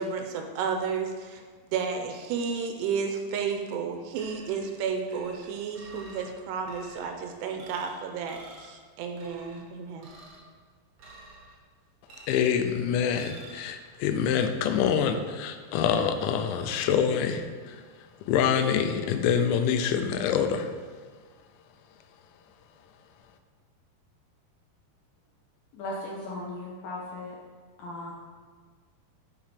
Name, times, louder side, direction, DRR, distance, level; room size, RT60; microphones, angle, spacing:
voice 1, 0.0-1.4 1.7-10.1, right 6 dB, 80° right, 4 dB, 2.7 m, -32 dB
sound 1, 4.1-4.7 5.1-6.3 6.6-7.1 7.6-8.0 8.3-8.8 9.2-9.6 10.0-10.4 11.0-11.6 12.1-12.6 13.2-13.6, right 2 dB, 60° right, 1.6 m, -49 dB
voice 2, 12.3-17.8 18.3-20.7, left 7 dB, 90° left, 7 dB, 3.0 m, -26 dB
voice 3, 25.7-27.4 27.8-28.1, left 2 dB, 75° left, -3 dB, 2.2 m, -37 dB
10.0 x 4.7 x 5.2 m, 1.5 s
omnidirectional pair, 5.1 m